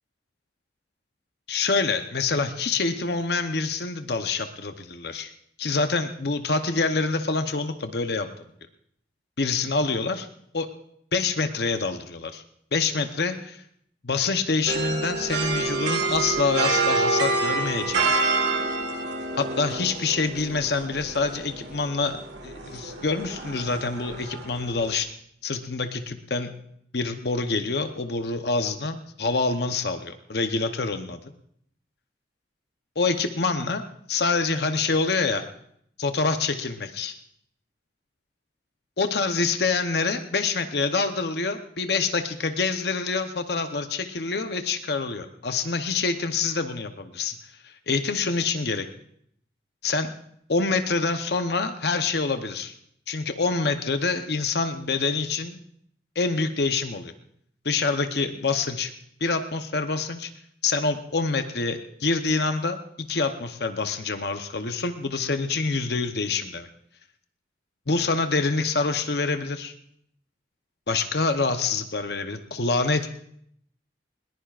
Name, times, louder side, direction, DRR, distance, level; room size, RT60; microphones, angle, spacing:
voice 1, 1.5-5.3 5.6-8.3 9.4-10.3 10.5-10.7 11.1-12.4 12.7-13.6 14.0-18.1 19.4-22.2 22.4-25.1 25.4-26.5 26.9-31.3 33.0-33.8 34.1-35.5 36.0-37.2 39.0-47.4 47.6-48.9 49.8-50.1 50.5-52.7 53.1-55.6 56.1-57.1 57.6-58.9 59.2-60.3 60.6-66.7 67.9-69.7 70.9-73.1, left 4 dB, 60° left, 7 dB, 0.9 m, -26 dB
sound 1, 14.7-25.0, right 3 dB, 75° right, 1.8 m, -28 dB
20.5 x 19.5 x 2.5 m, 0.69 s
head